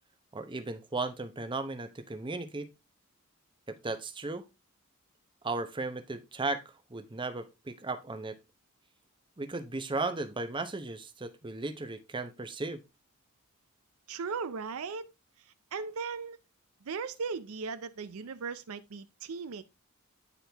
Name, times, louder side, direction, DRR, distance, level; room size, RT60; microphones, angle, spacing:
voice 1, 0.3-2.7 3.7-4.4 5.4-6.6 6.9-8.4 9.4-12.8, right 3 dB, 25° right, 0.8 m, -36 dB
voice 2, 14.1-15.1 15.7-16.4 16.8-19.6, right 5 dB, 75° right, 0.5 m, -37 dB
9.8 x 4.5 x 3.4 m
head